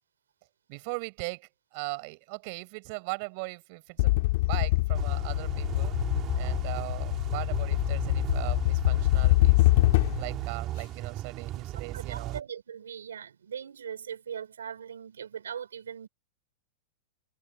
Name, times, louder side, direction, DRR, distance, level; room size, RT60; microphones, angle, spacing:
voice 1, 0.7-5.9 6.4-9.7 10.2-12.4, right 32 dB, 55° right, 5.9 m, -39 dB
sound 1, 4.0-10.4, left 20 dB, 60° left, 3.2 m, -25 dB
sound 2, 5.0-12.4, right 14 dB, 35° right, 2.9 m, -37 dB
voice 2, 11.9-16.1, right 8 dB, 90° right, 6.1 m, -40 dB
hypercardioid pair, 120°, 0 cm